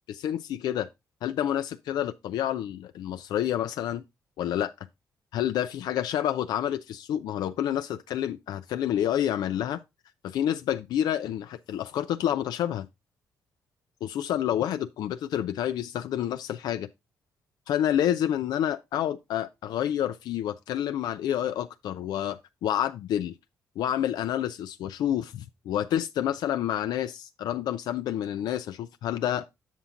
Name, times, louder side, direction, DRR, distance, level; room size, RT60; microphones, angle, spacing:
voice 1, 0.1-0.9 1.2-4.0 4.4-4.7 5.3-9.8 10.2-12.9 14.0-16.9 17.7-23.3 23.8-29.4, left 11 dB, 90° left, 0.4 m, -29 dB
8.3 x 5.8 x 3.7 m
cardioid pair, 100°, 7 cm